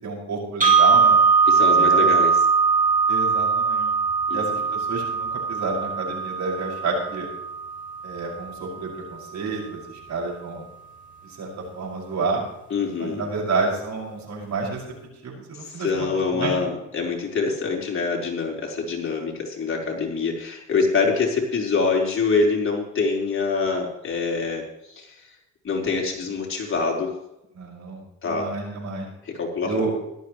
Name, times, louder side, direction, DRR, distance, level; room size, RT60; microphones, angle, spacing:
voice 1, 0.0-1.2 1.7-2.1 3.1-3.9 4.3-7.3 8.0-10.6 11.4-11.5 11.7-12.4 13.0-14.8 15.2-16.6 27.6-29.1 29.6-30.0, right 3 dB, 65° right, -1 dB, 6.3 m, -29 dB
sound 1, 0.6-8.6, right 5 dB, 25° right, 3.2 m, -21 dB
voice 2, 1.5-2.4 4.3-4.4 12.7-13.2 15.6-25.2 25.6-27.1 28.2-28.5 29.2-29.8, left 4 dB, 45° left, -1 dB, 4.4 m, -25 dB
17.0 x 13.5 x 3.2 m, 0.87 s
cardioid pair, 90°, 30 cm